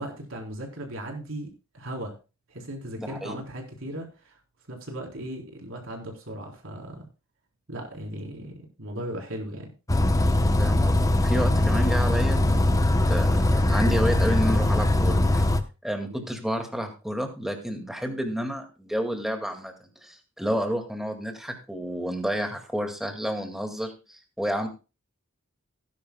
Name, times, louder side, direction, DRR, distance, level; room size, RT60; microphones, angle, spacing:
voice 1, 0.0-2.1 2.5-4.4 4.7-7.1 7.7-9.7 16.1-16.3, right 1 dB, 65° right, 0 dB, 3.9 m, -37 dB
voice 2, 3.0-3.3 10.6-12.8 13.1-15.4 15.8-24.7, equal, ahead, 4 dB, 2.0 m, -30 dB
Bus, 9.9-15.6, left 1 dB, 15° left, 0.8 m, -21 dB
17.5 x 10.5 x 2.2 m, 0.31 s
head